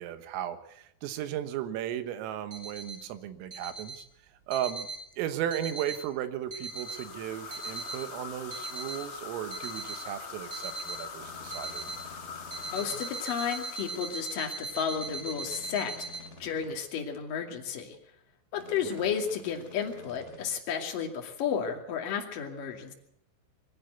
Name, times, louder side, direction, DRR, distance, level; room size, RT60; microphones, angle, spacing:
voice 1, 0.0-4.1 4.5-4.9 5.2-11.8 19.0-19.1, right 11 dB, 85° right, 10 dB, 4.0 m, -35 dB
sound 1, 2.5-3.0 3.5-4.0 4.5-5.0 5.5-6.0 6.5-7.0 7.5-8.0 8.5-9.0 9.5-10.0 10.5-11.0 11.5-12.0 12.5-16.2, right 3 dB, 20° right, 6.7 m, -39 dB
sound 2, 6.6-15.1, left 6 dB, 70° left, 1.2 m, -43 dB
sound 3, 11.2-13.1 14.9-16.8 18.5-20.4, left 2 dB, 20° left, 2.1 m, -50 dB
voice 2, 12.7-18.0 18.5-22.9, left 7 dB, 50° left, 2 dB, 3.6 m, -33 dB
22.5 x 15.0 x 8.3 m, 0.74 s
omnidirectional pair, 5.8 m